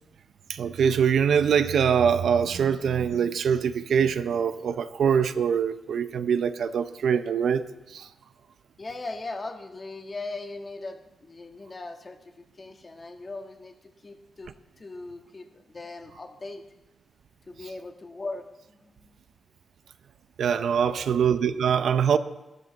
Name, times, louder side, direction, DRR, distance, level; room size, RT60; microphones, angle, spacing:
voice 1, 0.5-8.1 20.4-22.2, right 7 dB, 75° right, 12 dB, 0.6 m, -23 dB
voice 2, 8.8-13.8 14.0-16.6 17.5-19.2 20.8-21.1, left 3 dB, 35° left, 5 dB, 1.4 m, -39 dB
13.5 x 12.5 x 4.0 m, 1.0 s
cardioid pair, 70°, 0 cm